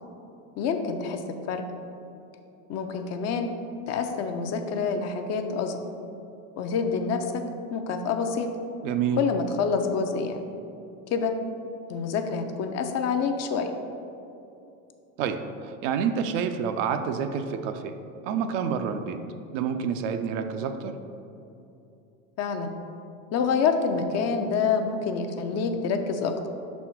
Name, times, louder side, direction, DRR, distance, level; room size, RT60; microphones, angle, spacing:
voice 1, 0.6-1.2 1.5-1.6 2.7-3.5 3.9-5.8 6.6-7.4 7.7-8.5 9.2-10.4 11.1-11.3 11.9-13.7 22.4-22.7 23.3-26.3, left 5 dB, 40° left, 6 dB, 0.5 m, -27 dB
voice 2, 8.8-9.2 15.2-17.9 18.2-19.2 19.5-20.9, right 7 dB, 65° right, 8 dB, 0.6 m, -28 dB
5.4 x 4.2 x 4.4 m, 2.8 s
hypercardioid pair, 95°, 42 cm